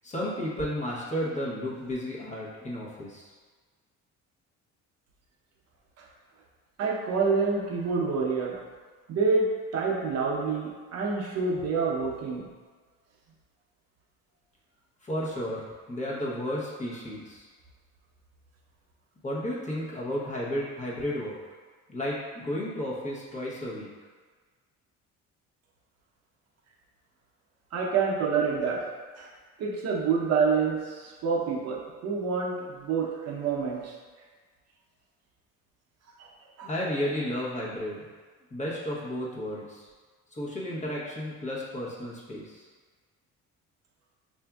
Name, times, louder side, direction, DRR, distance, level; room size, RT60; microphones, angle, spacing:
voice 1, 0.0-3.3 15.0-17.5 19.2-21.4 21.9-23.9 36.6-38.1 38.5-39.9 40.3-42.7, equal, 25° left, -6 dB, 0.9 m, -33 dB
voice 2, 6.8-8.6 9.1-12.5 27.7-28.9 29.2-29.3 29.6-34.0 36.2-36.7, right 5 dB, 55° right, -3 dB, 0.7 m, -27 dB
5.8 x 2.6 x 2.3 m, 1.5 s
cardioid pair, 130°, 31 cm